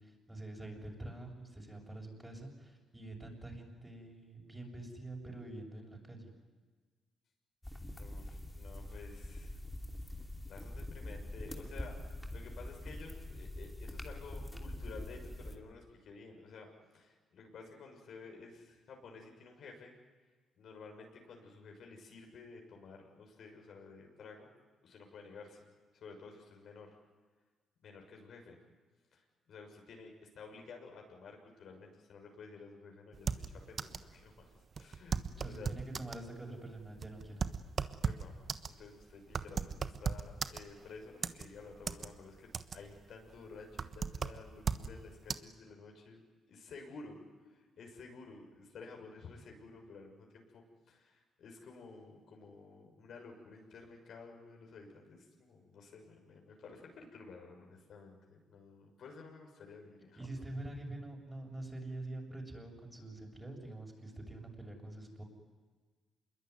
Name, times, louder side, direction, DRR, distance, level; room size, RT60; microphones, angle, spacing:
voice 1, 0.0-6.3 35.3-37.4 60.2-65.2, right 2 dB, 10° right, 1 dB, 7.2 m, -46 dB
sound 1, 7.6-15.6, left 1 dB, 10° left, 2.8 m, -44 dB
voice 2, 8.0-9.6 10.1-19.9 20.6-24.5 24.8-25.6 25.9-27.0 27.8-28.6 29.1-34.5 34.8-35.8 38.0-38.3 38.6-46.2 46.5-47.2 47.4-60.3, left 4 dB, 65° left, 2 dB, 6.4 m, -52 dB
sound 2, 33.1-34.1 34.4-34.5 34.8-36.2 36.8-40.9 41.2-42.1 42.4-43.0 43.3-44.9 45.3-45.4, right 6 dB, 45° right, 1.2 m, -37 dB
26.5 x 22.0 x 9.7 m, 1.4 s
cardioid pair, 90°, 0 cm